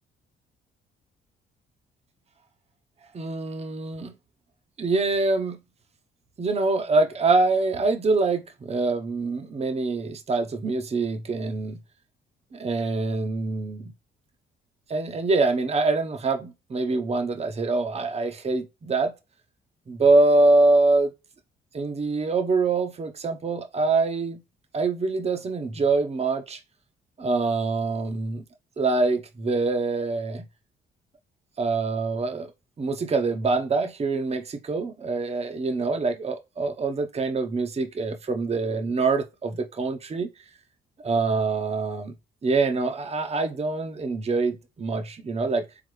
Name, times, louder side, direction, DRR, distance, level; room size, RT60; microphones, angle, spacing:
voice 1, 3.1-4.1 4.8-5.6 6.4-11.8 12.5-13.9 14.9-19.1 19.9-21.1 21.7-24.4 24.7-26.6 27.2-28.4 28.8-30.4 31.6-32.5 32.8-40.3 41.0-42.1 42.4-45.7, right 3 dB, 30° right, 0.9 m, -24 dB
3.9 x 3.7 x 3.2 m
cardioid pair, 90°, 20 cm